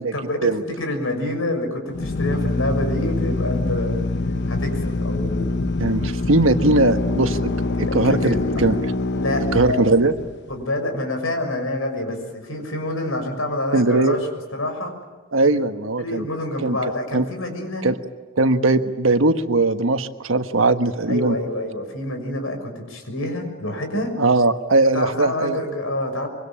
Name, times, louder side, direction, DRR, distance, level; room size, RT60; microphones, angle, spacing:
voice 1, 0.1-4.0 4.5-5.6 7.8-8.6 9.1-9.9 10.5-14.3 14.5-14.9 16.0-17.8 21.1-24.1 24.9-26.3, left 1 dB, 85° left, 5 dB, 6.4 m, -27 dB
Drill, 1.9-10.5, left 2 dB, 60° left, 0.9 m, -24 dB
voice 2, 5.8-7.5 7.8-8.8 9.5-10.1 13.7-14.2 15.3-16.2 16.6-16.8 17.1-17.2 17.8-18.0 18.4-21.3 24.2-25.6, right 2 dB, 70° right, 8 dB, 1.4 m, -19 dB
25.0 x 24.5 x 8.9 m, 1.3 s
head